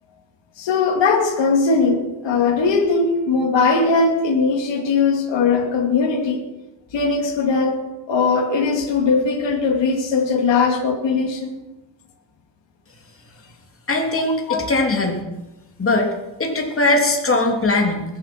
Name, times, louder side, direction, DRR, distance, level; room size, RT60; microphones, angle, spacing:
voice 1, 0.6-6.4 6.9-7.8 8.1-11.6 14.5-14.7, left 4 dB, 65° left, 3 dB, 2.6 m, -19 dB
voice 2, 13.9-15.2 15.8-16.1 16.4-18.0, left 2 dB, 30° left, 1 dB, 3.0 m, -20 dB
20.5 x 8.2 x 6.0 m, 1.0 s
cardioid pair, 85°, 46 cm